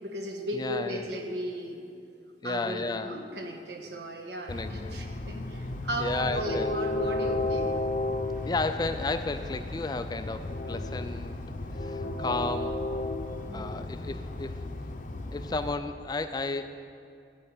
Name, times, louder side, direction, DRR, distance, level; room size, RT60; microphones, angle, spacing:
voice 1, 0.0-1.8 2.4-7.8 12.0-12.4 13.5-14.0, equal, 65° right, 2 dB, 1.4 m, -36 dB
voice 2, 0.5-1.0 2.4-3.2 4.5-5.1 6.0-6.7 8.5-11.4 11.8-12.8 13.5-14.6 15.3-16.6, left 3 dB, 20° left, 10 dB, 0.3 m, -33 dB
Train, 4.5-15.7, left 2 dB, 45° left, 0.7 m, -33 dB
13.0 x 5.6 x 9.4 m, 2.4 s
head